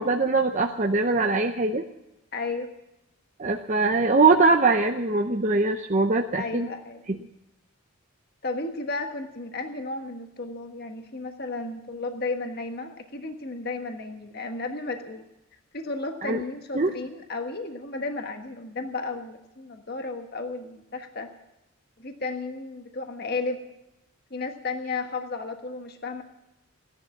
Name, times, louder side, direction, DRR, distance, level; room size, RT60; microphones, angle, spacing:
voice 1, 0.0-1.8 3.4-6.7 7.1-7.2 16.2-16.4 16.7-16.9, right 3 dB, 35° right, 4 dB, 0.7 m, -22 dB
voice 2, 2.3-2.7 6.3-7.0 8.4-15.3 15.7-21.3 22.0-23.6 24.3-26.2, left 3 dB, 45° left, 5 dB, 1.4 m, -33 dB
17.0 x 11.0 x 7.2 m, 0.89 s
head